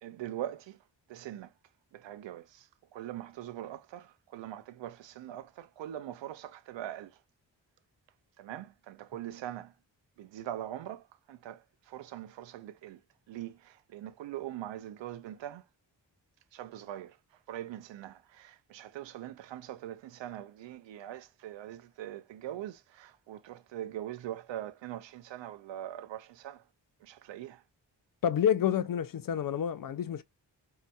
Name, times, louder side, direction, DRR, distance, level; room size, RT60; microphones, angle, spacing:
voice 1, 0.0-0.8 1.1-1.5 1.9-2.7 2.9-7.1 8.4-9.7 10.2-13.0 13.3-15.6 16.5-17.2 17.5-26.6 27.0-27.6, right 12 dB, 75° right, 0.5 m, -42 dB
voice 2, 28.2-30.2, left 9 dB, 50° left, 0.5 m, -28 dB
2.7 x 2.6 x 2.2 m
supercardioid pair, 40°, 45 cm